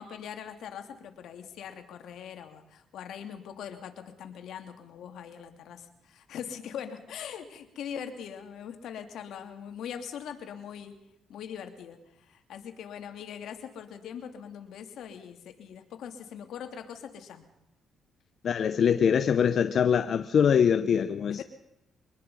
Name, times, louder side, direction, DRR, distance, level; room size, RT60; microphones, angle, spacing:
voice 1, 0.0-10.9 11.3-17.4 21.3-21.4, left 8 dB, 75° left, 2.8 m, -41 dB
voice 2, 18.4-21.4, left 7 dB, 55° left, 0.8 m, -23 dB
24.0 x 20.0 x 5.6 m
cardioid pair, 90°, 0 cm